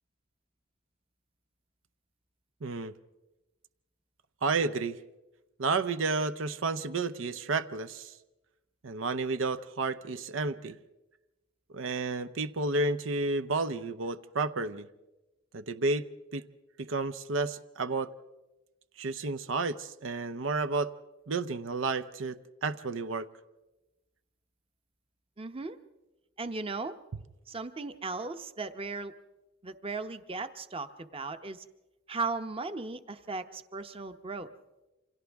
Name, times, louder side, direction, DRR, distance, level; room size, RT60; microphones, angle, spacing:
voice 1, 2.6-2.9 4.4-5.0 5.6-8.1 8.8-10.8 11.7-14.9 15.5-16.1 16.3-16.4 16.8-18.1 19.0-20.9 21.3-23.3, right 3 dB, 90° right, 12 dB, 0.7 m, -31 dB
voice 2, 25.4-25.8 26.4-26.9 27.5-29.1 29.6-31.6 32.1-34.5, right 3 dB, 30° right, 10 dB, 0.8 m, -37 dB
28.5 x 26.0 x 3.5 m, 1.1 s
head